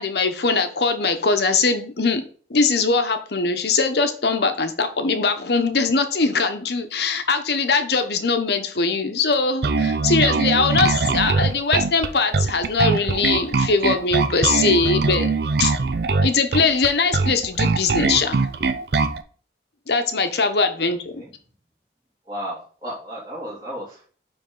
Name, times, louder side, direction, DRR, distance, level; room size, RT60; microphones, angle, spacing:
voice 1, 0.0-2.2 2.5-15.3 15.6-15.7 16.2-18.5 19.9-21.2, left 4 dB, 70° left, 8 dB, 0.9 m, -21 dB
Bass guitar, 9.6-19.2, right 4 dB, 65° right, 0.5 m, -21 dB
voice 2, 20.8-21.3 22.3-24.1, equal, 25° right, -8 dB, 3.0 m, -34 dB
9.3 x 3.5 x 3.8 m, 0.42 s
head